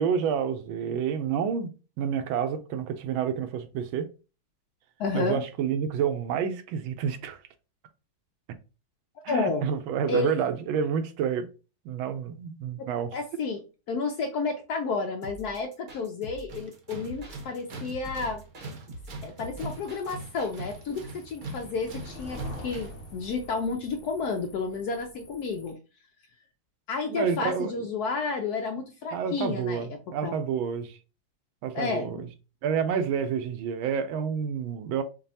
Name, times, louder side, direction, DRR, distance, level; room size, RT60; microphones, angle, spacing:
voice 1, 0.0-1.7 2.0-4.1 5.1-7.4 9.2-11.5 11.8-13.1 27.0-27.7 29.1-31.0 31.6-32.3 32.6-35.0, right 7 dB, 80° right, 1.3 m, -29 dB
voice 2, 5.0-5.4 9.3-9.7 10.1-10.3 13.1-13.6 13.9-18.4 19.2-25.8 26.9-30.4 31.7-32.2, left 4 dB, 85° left, 0.8 m, -31 dB
sound 1, 15.2-20.5, equal, 35° right, 0.8 m, -44 dB
Tools, 16.5-23.1, right 2 dB, 60° right, 1.0 m, -41 dB
sound 2, 19.4-25.7, left 1 dB, 65° left, 0.3 m, -46 dB
5.2 x 2.4 x 2.6 m
omnidirectional pair, 2.3 m